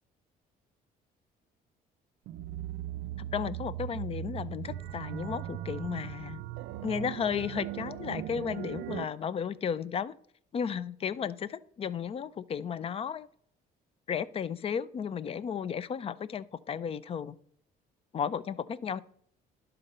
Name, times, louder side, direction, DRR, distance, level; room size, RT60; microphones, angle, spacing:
sound 1, 2.3-9.1, right 12 dB, 80° right, 0.4 m, -38 dB
voice 1, 3.3-6.4 6.8-10.1 10.5-13.3 14.1-17.3 18.1-19.0, left 7 dB, 35° left, 0.4 m, -34 dB
11.5 x 3.9 x 5.4 m
cardioid pair, 110°, 17 cm